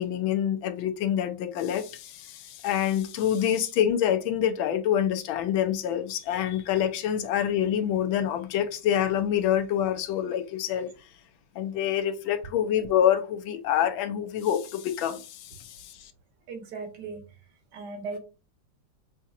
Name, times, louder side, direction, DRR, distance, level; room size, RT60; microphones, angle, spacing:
voice 1, 0.0-10.9 11.6-16.1, left 10 dB, 85° left, 1.4 m, -26 dB
voice 2, 16.5-17.2 17.7-18.2, right 4 dB, 65° right, 1.4 m, -37 dB
5.9 x 2.8 x 2.4 m
omnidirectional pair, 2.1 m